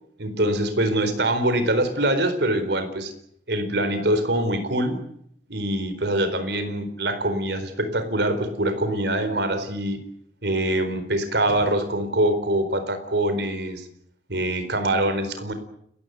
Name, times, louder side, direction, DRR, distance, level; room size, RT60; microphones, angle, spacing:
voice 1, 0.2-3.1 3.5-5.0 5.5-10.0 10.4-13.9 14.3-15.5, right 1 dB, 65° right, 10 dB, 4.4 m, -24 dB
30.0 x 15.0 x 9.5 m, 0.71 s
head